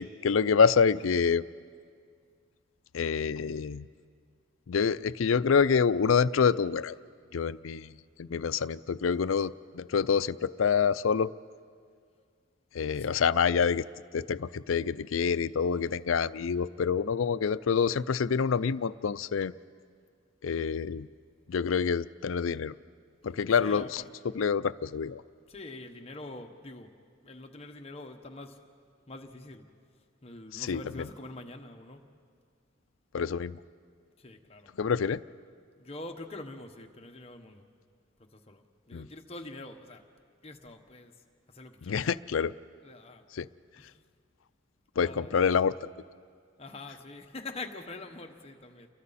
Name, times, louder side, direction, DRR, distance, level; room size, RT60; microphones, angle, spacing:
voice 1, 0.0-1.5 2.9-3.9 4.7-7.0 7.3-7.9 8.2-11.3 12.7-13.9 14.1-19.5 20.4-21.1 21.5-22.7 23.2-24.0 24.3-25.2 30.5-31.1 33.1-33.6 34.8-35.2 38.9-39.1 41.8-42.5 43.3-43.5 45.0-45.8, left 6 dB, 85° left, 16 dB, 0.5 m, -27 dB
voice 2, 23.6-24.1 25.5-26.9 27.2-28.6 29.1-29.6 30.2-32.0 34.2-34.7 35.8-37.6 38.3-40.0 40.4-41.1 41.5-41.9 42.8-43.2 43.8-43.9 45.0-45.5 46.6-48.9, left 2 dB, 30° left, 4 dB, 1.2 m, -44 dB
30.0 x 23.0 x 4.2 m, 2.1 s
head